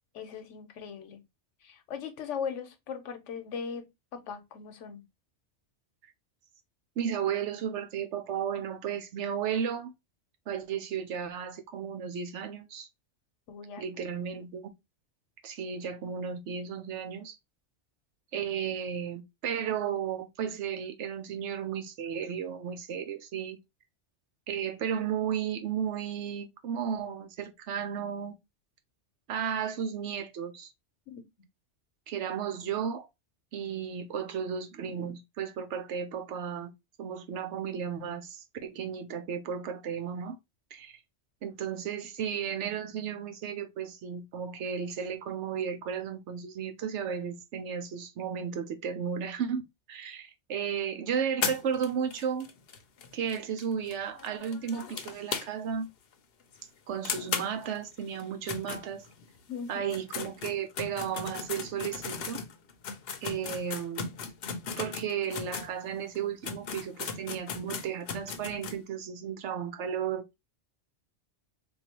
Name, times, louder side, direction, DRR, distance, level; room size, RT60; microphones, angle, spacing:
voice 1, 0.1-1.2 1.6-5.0 13.5-13.8 31.1-31.2 59.5-59.9, left 6 dB, 80° left, 1.1 m, -39 dB
voice 2, 7.0-9.9 10.5-12.9 13.8-14.7 15.4-17.4 18.3-23.6 24.5-28.3 29.3-30.7 32.1-33.1 33.5-36.7 37.0-40.4 40.7-41.0 41.4-49.6 49.9-52.5 53.1-55.9 56.9-59.0 59.7-62.4 63.2-64.1 64.8-70.2, right 8 dB, 80° right, 1.0 m, -34 dB
sound 1, 51.4-55.8 56.1-56.2 56.5-56.6 57.0-59.4 59.8-65.7 66.1-66.2 66.4-68.8, left 6 dB, 60° left, 0.8 m, -37 dB
3.9 x 2.7 x 2.8 m
omnidirectional pair, 1.2 m